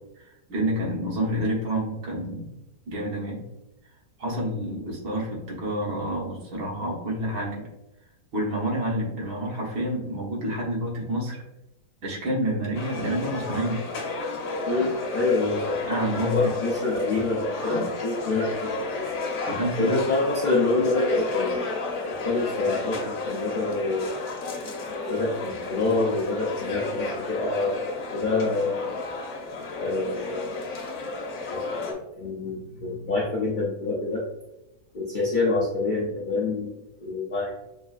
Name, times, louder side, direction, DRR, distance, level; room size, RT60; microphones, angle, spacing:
voice 1, 0.2-2.5 2.9-3.4 4.2-7.7 8.3-11.4 12.0-13.8 15.9-16.4 17.6-17.8 19.5-19.9, right 1 dB, 80° right, -3 dB, 1.7 m, -28 dB
sound 1, 12.7-31.9, left 3 dB, 55° left, 1.0 m, -32 dB
voice 2, 14.7-15.9 16.2-19.1 19.8-21.8 22.1-24.3 25.0-28.9 29.8-30.7 31.5-34.2 34.9-37.6, left 3 dB, 80° left, -5 dB, 0.4 m, -27 dB
6.1 x 2.4 x 2.4 m, 0.93 s
omnidirectional pair, 1.7 m